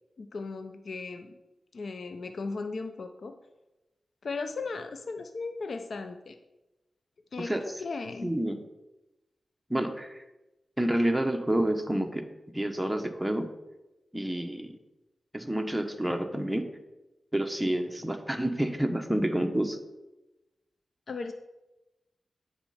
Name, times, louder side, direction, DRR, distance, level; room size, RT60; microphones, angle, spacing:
voice 1, 0.2-1.4 1.7-3.3 4.2-6.4 7.3-7.5 7.8-8.3 21.1-21.3, left 3 dB, 70° left, 7 dB, 0.5 m, -36 dB
voice 2, 8.2-8.6 9.7-10.2 10.8-12.3 12.5-13.5 14.1-14.8 15.3-16.7 17.3-19.8, right 1 dB, 5° right, 5 dB, 1.0 m, -29 dB
8.8 x 4.2 x 5.7 m, 1.0 s
cardioid pair, 55°, 0 cm